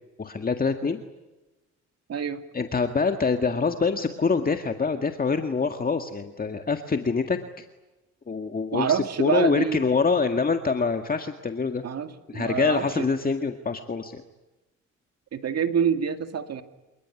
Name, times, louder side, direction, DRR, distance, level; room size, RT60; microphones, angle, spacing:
voice 1, 0.2-1.0 2.5-7.6 8.3-11.8 12.3-14.2, left 4 dB, 30° left, 6 dB, 1.9 m, -25 dB
voice 2, 2.1-2.4 8.7-9.8 11.8-13.0 15.3-16.6, right 7 dB, 55° right, 8 dB, 2.2 m, -26 dB
28.0 x 19.0 x 9.9 m, 1.1 s
cardioid pair, 90°, 30 cm